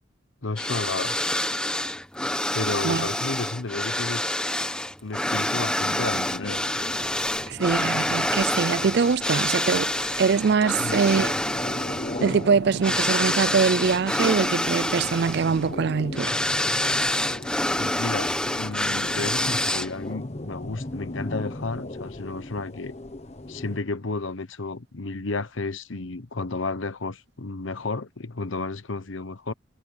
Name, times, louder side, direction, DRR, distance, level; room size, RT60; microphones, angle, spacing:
voice 1, 0.4-1.2 2.5-4.4 5.0-6.6 10.8-11.0 17.8-22.9 23.5-29.5, left 3 dB, 80° left, 1.1 m, -32 dB
sound 1, 0.6-20.1, left 1 dB, 5° left, 1.0 m, -27 dB
sound 2, 5.9-23.8, left 1 dB, 35° left, 1.3 m, -38 dB
voice 2, 7.5-9.9 10.2-11.3 12.2-16.4, right 5 dB, 55° right, 0.4 m, -23 dB
head